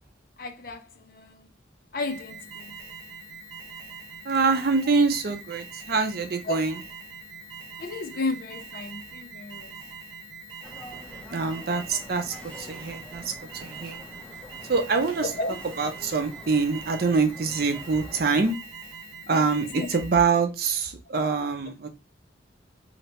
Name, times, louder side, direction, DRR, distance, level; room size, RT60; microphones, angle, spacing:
voice 1, 0.4-1.4 1.9-2.7 6.5-6.6 7.8-9.7 15.2-15.6 19.3-19.5 19.7-19.9, left 3 dB, 50° left, 0.5 m, -33 dB
Alarm, 2.0-20.4, right 4 dB, 15° right, 1.0 m, -43 dB
voice 2, 4.2-6.8 11.3-13.3 13.6-14.0 14.7-15.3 15.8-18.6 19.3-21.9, right 4 dB, 50° right, 0.5 m, -25 dB
sound 1, 10.6-18.5, equal, 5° left, 0.6 m, -46 dB
3.2 x 2.8 x 2.9 m
head